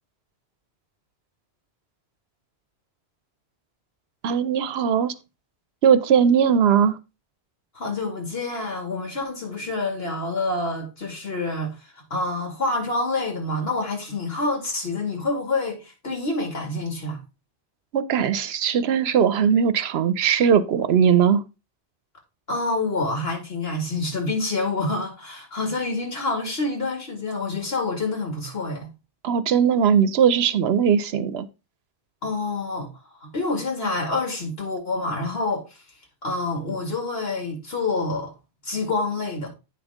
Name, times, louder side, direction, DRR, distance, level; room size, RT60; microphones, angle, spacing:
voice 1, 4.2-5.1 5.8-7.0 17.9-21.4 29.2-31.5, right 7 dB, 70° right, 0.9 m, -19 dB
voice 2, 7.7-17.2 22.5-28.9 32.2-32.9 33.2-35.8 36.2-38.3 38.6-39.5, left 2 dB, 65° left, 2.4 m, -27 dB
9.0 x 5.3 x 3.5 m
omnidirectional pair, 1.1 m